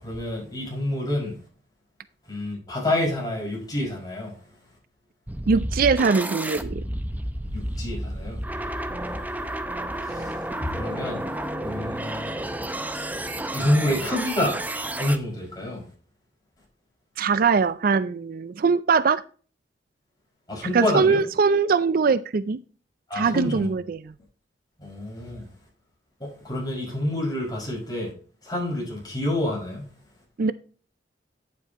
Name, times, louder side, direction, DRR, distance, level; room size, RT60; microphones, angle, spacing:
voice 1, 0.0-1.4 2.3-4.4 7.5-8.4 10.0-11.2 11.6-12.3 13.5-14.6 15.0-15.8 20.5-21.2 23.1-23.7 24.8-25.5 26.2-28.1 28.4-29.9, left 1 dB, 20° left, 5.3 m, -28 dB
sound 1, 5.3-15.2, right 1 dB, 10° right, 0.7 m, -31 dB
voice 2, 5.5-6.8 17.2-19.2 20.7-22.6 23.1-24.1 30.4-30.5, right 5 dB, 55° right, 0.4 m, -21 dB
9.3 x 8.4 x 2.9 m
head